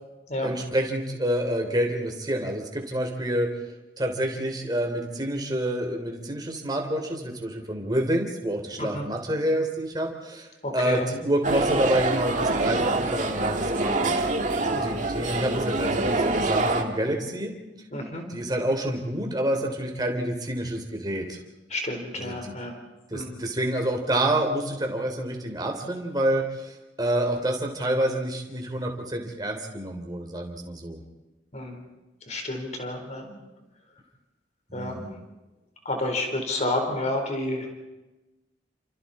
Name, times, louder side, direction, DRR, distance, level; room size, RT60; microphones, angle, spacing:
voice 1, 0.4-3.5 4.0-10.5 10.7-14.3 14.7-17.5 18.3-21.4 22.1-22.5 23.1-31.0 34.7-35.1, right 1 dB, 20° right, 2 dB, 3.4 m, -28 dB
voice 2, 10.6-11.0 14.7-15.0 17.9-18.3 21.7-22.8 23.1-23.4 31.5-31.8 32.3-33.3 34.7-35.1 35.8-37.7, left 1 dB, 40° left, 3 dB, 4.3 m, -30 dB
sound 1, 11.4-16.8, right 2 dB, 40° right, 2.0 m, -25 dB
30.0 x 27.5 x 4.3 m, 1.1 s
head